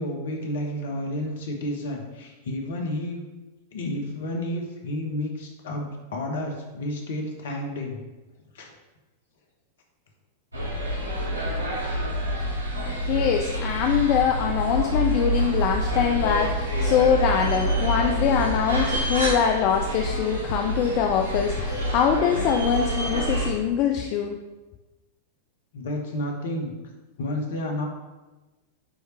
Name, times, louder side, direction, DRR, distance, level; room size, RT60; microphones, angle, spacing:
voice 1, 0.0-3.2 3.7-8.0 8.5-8.7 25.7-26.7 27.2-27.9, left 1 dB, 65° left, 2 dB, 1.2 m, -31 dB
sound 1, 10.5-23.5, equal, 85° right, 1.2 m, -27 dB
voice 2, 13.0-24.4, left 8 dB, 50° left, 3 dB, 0.5 m, -23 dB
8.9 x 3.3 x 3.2 m, 1.1 s
figure-of-eight pair, 90°, 0 cm